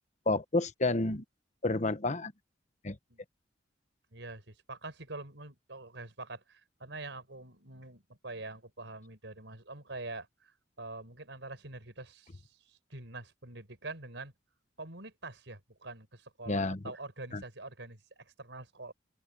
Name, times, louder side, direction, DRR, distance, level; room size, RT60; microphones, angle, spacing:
voice 1, 0.3-1.2 1.6-2.3 2.8-3.0 16.5-16.8 17.3-17.4, left 2 dB, 40° left, 1.1 m, -30 dB
voice 2, 4.1-14.3 14.8-18.9, right 2 dB, 75° right, 5.1 m, -45 dB
open air
head